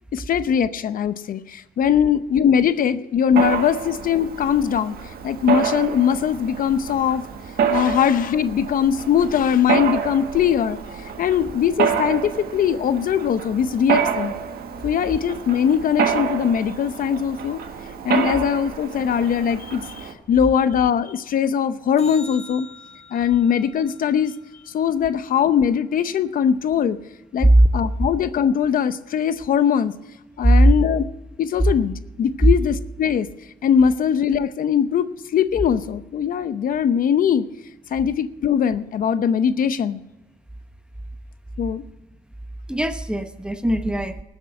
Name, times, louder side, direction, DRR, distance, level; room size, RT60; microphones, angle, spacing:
voice 1, 0.1-5.0 5.2-7.3 7.7-14.3 14.8-17.6 18.0-22.7 23.1-24.3 24.7-27.0 27.3-29.9 30.4-31.0 31.4-33.3 33.6-37.5 37.9-40.0 41.6-41.8, left 8 dB, 60° left, 12 dB, 0.7 m, -21 dB
Mechanisms, 3.4-20.1, right 7 dB, 75° right, 1.6 m, -27 dB
sound 1, 22.0-26.4 33.0-33.1, left 4 dB, 40° left, 1.5 m, -46 dB
voice 2, 42.7-44.2, right 1 dB, 5° right, 9 dB, 0.8 m, -17 dB
19.5 x 8.1 x 5.7 m, 1.0 s
cardioid pair, 130°, 16 cm